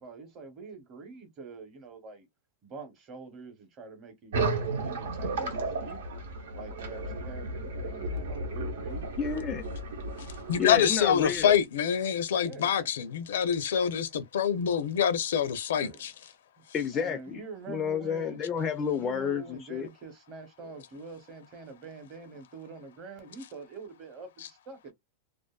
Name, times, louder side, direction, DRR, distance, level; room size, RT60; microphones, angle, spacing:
voice 1, 0.0-2.3 2.6-6.2 6.5-9.0 12.4-12.9 15.7-16.0 16.6-16.7 16.9-18.4 18.9-24.9, right 4 dB, 30° right, 0.9 m, -45 dB
sound 1, 4.3-11.5, right 2 dB, 90° right, 0.8 m, -34 dB
voice 2, 9.2-9.6 10.6-11.5 16.7-17.4 17.7-19.9, left 7 dB, 20° left, 0.3 m, -30 dB
voice 3, 10.5-16.1, left 8 dB, 85° left, 0.5 m, -26 dB
2.4 x 2.4 x 2.3 m
supercardioid pair, 160°, 0 cm